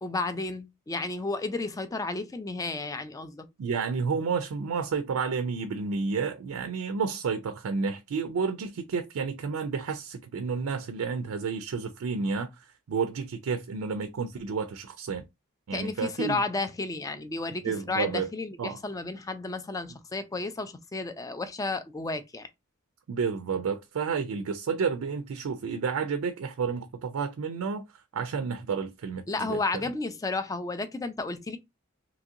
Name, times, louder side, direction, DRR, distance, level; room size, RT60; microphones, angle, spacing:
voice 1, 0.0-3.5 15.7-22.5 29.3-31.6, left 3 dB, 15° left, 0.3 m, -32 dB
voice 2, 3.6-15.2 15.7-16.4 17.6-18.3 18.6-18.8 23.1-27.8 28.1-29.8, right 5 dB, 90° right, 0.4 m, -31 dB
2.9 x 2.7 x 2.4 m
head